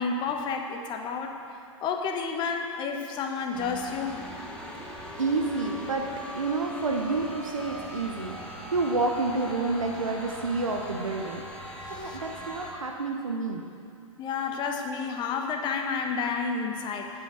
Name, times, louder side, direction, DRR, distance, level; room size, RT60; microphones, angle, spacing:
voice 1, 0.0-1.4 1.8-4.2 12.0-12.2 14.2-17.1, left 5 dB, 30° left, 4 dB, 1.1 m, -30 dB
sound 1, 3.5-12.7, equal, 5° left, 1.6 m, -40 dB
voice 2, 5.2-6.1 6.4-8.4 8.7-11.4 12.0-13.6, right 3 dB, 85° right, 2 dB, 1.0 m, -29 dB
8.3 x 7.8 x 7.7 m, 2.5 s
figure-of-eight pair, 115°, 17 cm